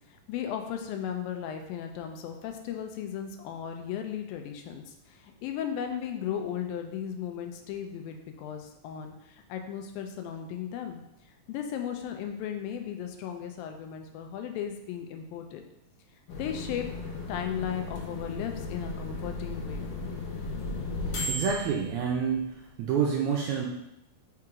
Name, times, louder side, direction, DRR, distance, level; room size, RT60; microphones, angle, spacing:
voice 1, 0.1-11.0 11.5-15.6 16.4-16.9 17.3-20.0, left 9 dB, 85° left, 5 dB, 2.4 m, -36 dB
sound 1, 16.3-22.7, left 2 dB, 70° left, 2.5 m, -36 dB
voice 2, 21.3-22.5 22.8-23.7, right 6 dB, 80° right, -2 dB, 1.8 m, -27 dB
5.8 x 4.6 x 3.6 m, 0.86 s
omnidirectional pair, 4.1 m